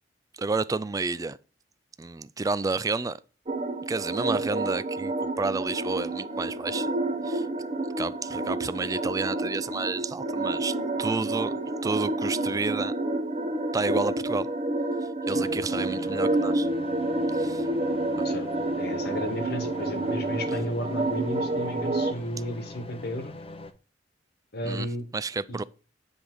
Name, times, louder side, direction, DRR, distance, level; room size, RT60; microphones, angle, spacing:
voice 1, 0.4-1.4 2.0-3.2 3.9-6.9 7.2-7.5 8.0-11.5 11.8-12.9 13.7-14.5 15.3-16.7 17.3-17.7 18.2-18.3 24.6-24.9 25.1-25.6, right 3 dB, 20° right, 0.4 m, -30 dB
sound 1, 3.5-22.1, right 2 dB, 35° right, 1.0 m, -29 dB
sound 2, 15.3-23.7, left 2 dB, 30° left, 0.8 m, -43 dB
voice 2, 18.8-23.3 24.5-25.1 25.5-25.6, equal, 60° left, 1.5 m, -33 dB
9.8 x 3.5 x 6.2 m
head